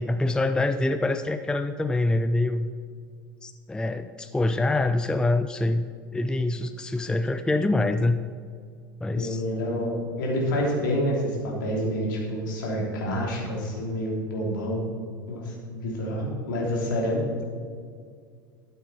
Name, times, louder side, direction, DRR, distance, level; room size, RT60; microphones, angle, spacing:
voice 1, 0.0-2.7 3.4-8.2 9.0-9.4, left 2 dB, 5° left, 10 dB, 0.4 m, -25 dB
voice 2, 9.1-14.8 15.3-17.2, equal, 65° left, -2 dB, 3.1 m, -28 dB
12.5 x 9.0 x 4.4 m, 2.1 s
figure-of-eight pair, 75°, 11 cm